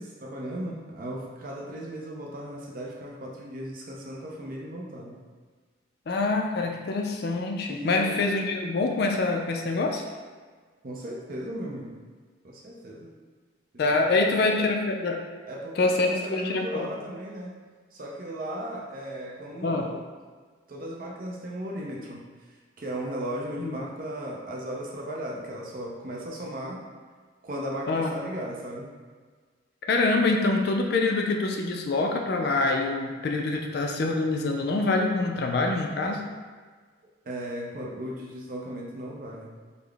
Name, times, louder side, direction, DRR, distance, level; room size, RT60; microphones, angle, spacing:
voice 1, 0.0-5.2 7.7-8.3 10.0-10.1 10.8-11.9 12.4-13.1 13.7-14.7 15.5-17.5 17.9-20.1 20.7-22.2 22.8-26.9 27.4-28.9 37.3-39.5, equal, 45° right, -2 dB, 0.5 m, -36 dB
voice 2, 6.1-10.0 13.8-15.2 15.8-16.9 19.6-19.9 23.6-23.8 27.9-28.1 29.9-36.2, left 3 dB, 50° left, 2 dB, 0.3 m, -25 dB
3.7 x 2.0 x 3.3 m, 1.5 s
head